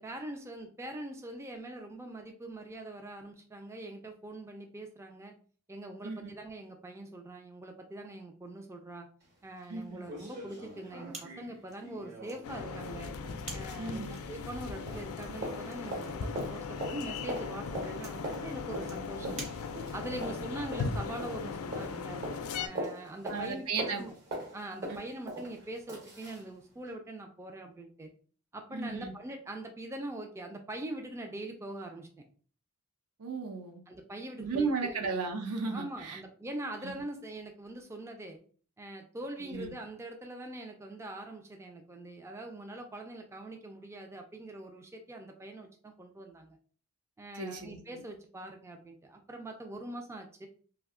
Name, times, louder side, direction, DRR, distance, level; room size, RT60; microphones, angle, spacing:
voice 1, 0.0-5.3 5.7-9.1 9.4-13.1 13.5-19.4 19.9-22.3 22.6-24.1 24.5-28.1 28.5-32.2 33.9-35.0 35.7-38.4 38.8-46.6 47.2-50.5, right 1 dB, 10° right, 4 dB, 0.3 m, -43 dB
sound 1, 9.2-9.3 9.6-9.7 10.0-14.6 14.9-26.5 26.8-26.9, right 1 dB, 50° right, 1.1 m, -42 dB
voice 2, 9.7-10.0 13.8-14.1 19.2-19.3 20.1-20.2 23.3-24.0 24.9-25.0 28.7-29.1 33.2-33.8 34.4-36.2 39.5-39.7 47.4-47.8, right 4 dB, 75° right, 4 dB, 0.6 m, -35 dB
sound 2, 11.1-20.1, right 2 dB, 30° right, 0.9 m, -50 dB
sound 3, 12.4-22.7, left 5 dB, 70° left, 0.4 m, -38 dB
2.7 x 2.2 x 3.5 m, 0.43 s
head